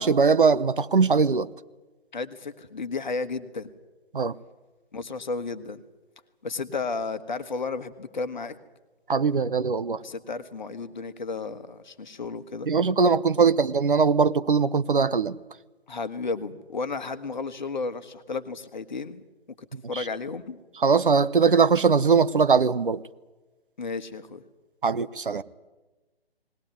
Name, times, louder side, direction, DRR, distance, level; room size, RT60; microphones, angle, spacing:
voice 1, 0.0-1.5 4.1-4.3 9.1-10.0 12.7-15.4 19.9-20.0 20.8-23.0 24.8-25.4, right 5 dB, 55° right, 0.8 m, -21 dB
voice 2, 2.1-3.7 4.9-5.8 6.4-8.6 10.0-12.7 15.9-19.2 19.6-20.6 23.8-24.4, left 4 dB, 45° left, 1.4 m, -33 dB
19.5 x 18.5 x 9.5 m
figure-of-eight pair, 145°, 31 cm